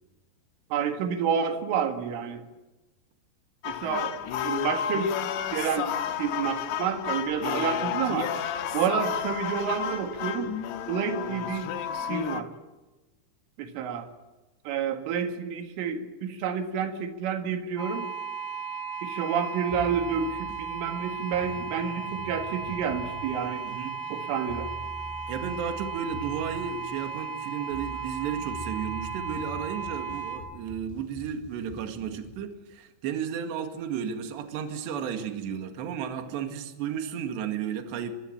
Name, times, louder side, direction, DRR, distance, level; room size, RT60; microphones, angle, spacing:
voice 1, 0.7-2.5 3.7-4.2 4.4-5.1 5.5-8.3 8.7-10.5 10.9-11.7 12.1-12.5 13.6-14.1 14.7-18.1 19.0-23.6 24.1-24.7, right 7 dB, 85° right, 6 dB, 4.3 m, -29 dB
sound 1, 3.6-12.4, left 9 dB, 70° left, 3.3 m, -31 dB
sound 2, 17.8-30.4, right 6 dB, 5° left, 7.0 m, -36 dB
sound 3, 19.7-32.5, left 2 dB, 90° left, 10.5 m, -45 dB
voice 2, 23.6-24.0 25.3-38.1, right 7 dB, 65° right, 6 dB, 4.0 m, -33 dB
24.0 x 22.0 x 8.8 m, 1.1 s
omnidirectional pair, 5.5 m